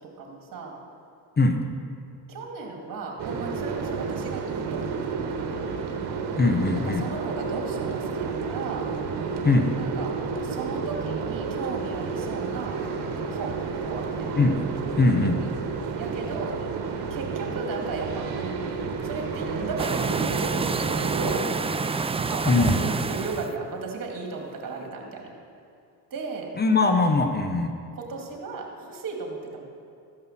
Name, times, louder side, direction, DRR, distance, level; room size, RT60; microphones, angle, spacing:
voice 1, 0.2-0.8 2.3-5.7 6.8-8.9 9.8-10.2 10.4-12.8 13.3-14.3 16.0-16.6 17.1-18.3 19.0-20.6 21.0-21.5 22.2-25.3 26.1-26.5 27.9-29.6, right 4 dB, 50° right, 1 dB, 2.5 m, -35 dB
voice 2, 1.4-1.7 6.4-7.1 9.4-9.8 14.4-14.7 15.0-15.4 22.4-22.8 26.6-27.7, left 3 dB, 25° left, 5 dB, 0.9 m, -21 dB
sound 1, 3.2-21.4, right 5 dB, 70° right, 1.3 m, -31 dB
sound 2, 19.8-23.5, right 4 dB, 15° right, 0.4 m, -27 dB
14.0 x 5.5 x 7.4 m, 2.5 s
cardioid pair, 85°, 41 cm